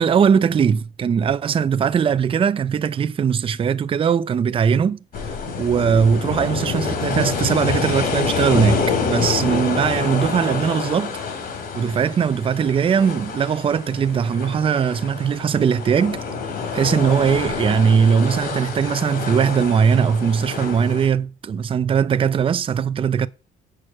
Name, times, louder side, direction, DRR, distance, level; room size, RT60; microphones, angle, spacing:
voice 1, 0.0-5.0 5.6-11.2 11.7-16.2 16.7-23.3, right 7 dB, 30° right, 0.6 m, -20 dB
sound 1, 5.1-21.1, left 5 dB, 60° left, 3.4 m, -27 dB
6.5 x 6.4 x 7.6 m
cardioid pair, 110°, 17 cm